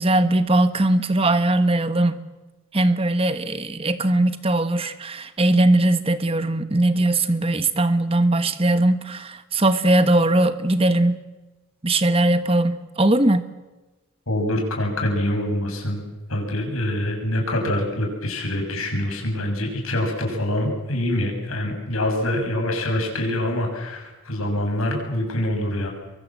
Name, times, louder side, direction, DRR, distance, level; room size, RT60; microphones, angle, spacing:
voice 1, 0.0-2.2 2.7-11.2 11.8-13.4, right 1 dB, 25° right, 11 dB, 1.3 m, -20 dB
voice 2, 14.3-16.0 16.3-25.9, left 1 dB, 85° left, 2 dB, 6.9 m, -25 dB
24.5 x 23.5 x 7.5 m, 1.1 s
head